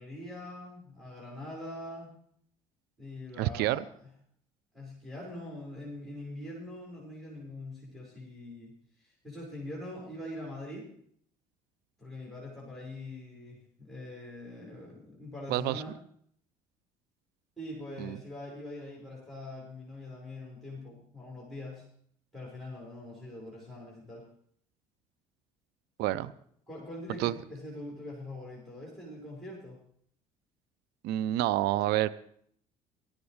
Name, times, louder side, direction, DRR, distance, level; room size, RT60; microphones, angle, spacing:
voice 1, 0.0-2.1 3.0-4.1 4.7-10.9 12.0-16.0 17.6-21.9 22.3-24.3 26.2-26.3 26.7-29.8, left 1 dB, ahead, -4 dB, 5.6 m, -43 dB
voice 2, 3.4-3.8 15.5-15.8 18.0-18.2 26.0-26.3 27.2-27.3 31.0-32.1, right 14 dB, 60° right, 16 dB, 0.6 m, -28 dB
18.0 x 14.0 x 3.3 m, 0.63 s
hypercardioid pair, 60°, 19 cm